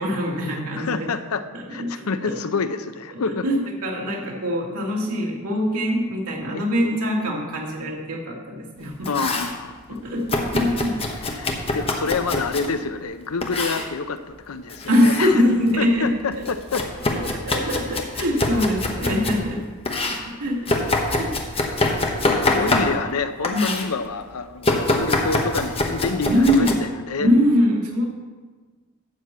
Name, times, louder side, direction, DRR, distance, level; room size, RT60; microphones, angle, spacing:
voice 1, 0.0-1.1 1.5-2.3 3.1-9.1 10.0-11.3 14.9-16.1 16.4-16.5 17.1-19.7 20.0-21.6 22.5-22.9 23.5-23.8 26.3-26.8 27.2-28.1, equal, 85° right, -1 dB, 2.2 m, -23 dB
voice 2, 0.8-3.5 9.1-10.0 11.2-15.4 15.8-16.9 19.4-19.6 20.1-20.4 22.3-27.3, left 4 dB, 75° left, 11 dB, 0.6 m, -28 dB
Domestic sounds home sounds, 8.8-9.6 10.3-12.7 13.4-13.9 14.7-15.3 15.7-19.4 19.8-23.2 23.4-23.9 24.6-26.7, left 2 dB, 25° left, 0.9 m, -25 dB
12.0 x 4.4 x 8.1 m, 1.4 s
head